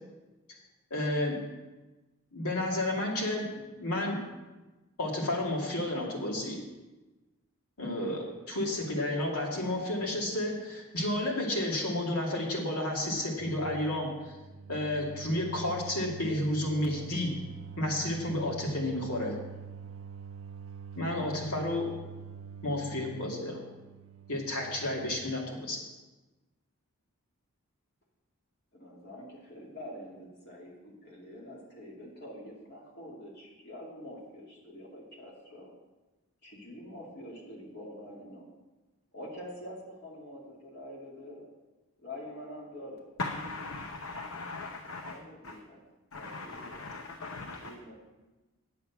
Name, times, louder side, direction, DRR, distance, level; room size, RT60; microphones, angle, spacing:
voice 1, 0.9-1.4 2.3-4.2 5.0-6.6 7.8-14.4 14.7-17.3 17.8-19.4 21.0-21.9 22.6-23.6 24.3-25.8, left 1 dB, 90° left, -2 dB, 2.5 m, -31 dB
sound 1, 13.4-25.2, right 6 dB, 60° right, 0.4 m, -45 dB
voice 2, 28.7-35.7 36.4-38.5 39.1-41.5 42.0-43.1 45.0-45.8 46.1-47.0 47.6-47.9, left 1 dB, 50° left, -3 dB, 2.7 m, -46 dB
voice 3, 43.2-43.8 44.3-45.1 45.4-45.5 46.1-47.7, left 3 dB, 75° left, 4 dB, 0.8 m, -39 dB
9.1 x 8.5 x 6.0 m, 1.1 s
head